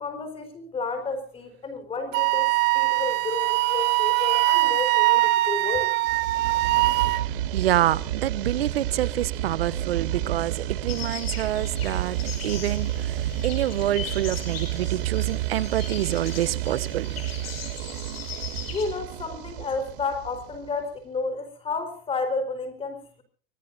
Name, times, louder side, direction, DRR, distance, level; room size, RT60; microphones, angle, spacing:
voice 1, 0.0-5.9 18.7-23.2, left 4 dB, 20° left, 9 dB, 4.5 m, -31 dB
Wind instrument woodwind instrument, 2.1-7.3, right 20 dB, 35° right, 1.0 m, -22 dB
sound 1, 6.0-20.8, right 12 dB, 65° right, 2.3 m, -30 dB
voice 2, 7.5-12.2 12.4-17.1, right 13 dB, 90° right, 19 dB, 1.1 m, -27 dB
sound 2, 10.9-18.9, left 7 dB, 90° left, 7.0 m, -39 dB
25.5 x 18.5 x 2.7 m, 0.43 s
supercardioid pair, 140°, 29 cm